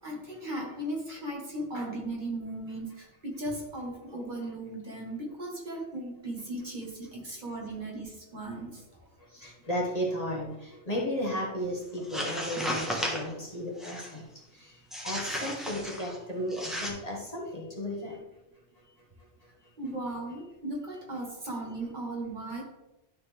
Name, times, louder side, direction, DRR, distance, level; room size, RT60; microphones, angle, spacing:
voice 1, 0.0-9.1 16.6-16.7 19.8-22.6, right 1 dB, 45° right, -2 dB, 1.5 m, -37 dB
voice 2, 9.3-14.2 14.5-14.8 15.0-18.2, equal, 35° left, -3 dB, 1.6 m, -34 dB
sound 1, 11.9-13.3 13.8-14.2 14.9-16.2 16.5-16.9, equal, ahead, 1.2 m, -34 dB
11.5 x 4.1 x 3.4 m, 0.96 s
omnidirectional pair, 1.2 m